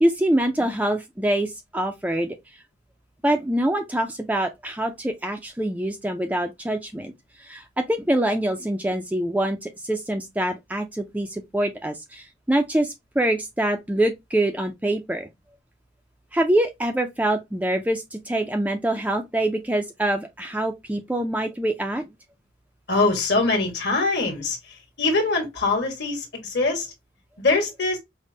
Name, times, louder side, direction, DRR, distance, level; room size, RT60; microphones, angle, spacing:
voice 1, 0.0-2.4 3.2-7.1 7.4-15.3 16.3-22.1, right 1 dB, 10° right, 0.3 m, -25 dB
voice 2, 22.9-26.9 27.4-28.0, left 3 dB, 55° left, 1.4 m, -23 dB
5.1 x 2.1 x 2.6 m
head